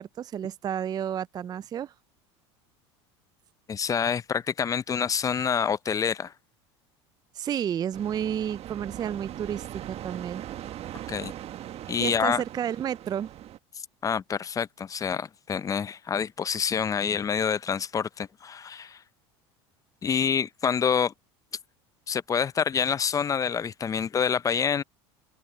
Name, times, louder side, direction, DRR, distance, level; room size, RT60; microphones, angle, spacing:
voice 1, 0.0-1.9 7.3-10.4 12.0-13.3, right 9 dB, 30° right, 0.4 m, -31 dB
voice 2, 3.7-6.3 11.1-11.3 11.9-12.4 14.0-19.0 20.0-21.1 22.1-24.8, left 7 dB, 25° left, 0.5 m, -27 dB
sound 1, 7.9-13.6, right 12 dB, 45° right, 1.5 m, -40 dB
open air
supercardioid pair, 95°, 14 cm